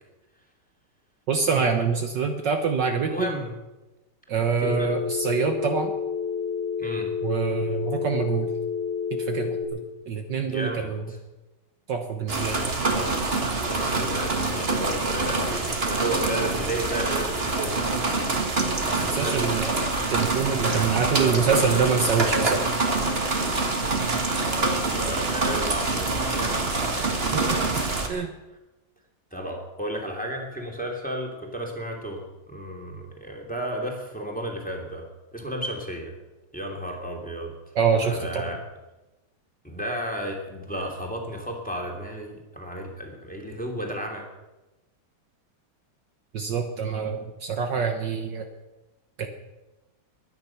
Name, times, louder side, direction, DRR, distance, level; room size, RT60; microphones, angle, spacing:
voice 1, 1.3-3.3 4.3-5.9 7.2-8.5 9.1-9.8 10.1-11.0 11.9-12.7 19.1-19.8 20.1-22.7 27.3-27.4 28.1-28.3 37.8-38.4 46.3-48.5 49.2-49.3, right 6 dB, 60° right, 5 dB, 1.6 m, -25 dB
voice 2, 3.1-3.6 4.6-4.9 6.8-7.1 10.5-11.2 12.9-13.2 13.6-17.9 18.6-19.7 20.7-22.2 22.8-23.1 24.4-27.7 29.3-35.0 35.3-36.1 36.5-37.5 38.0-38.6 39.6-44.2, right 1 dB, 5° left, 0 dB, 2.8 m, -33 dB
Telephone, 4.7-9.7, left 6 dB, 65° left, 2.8 m, -29 dB
sound 1, 12.3-28.1, right 3 dB, 30° right, 1.7 m, -26 dB
22.0 x 10.0 x 5.9 m, 1.1 s
omnidirectional pair, 2.3 m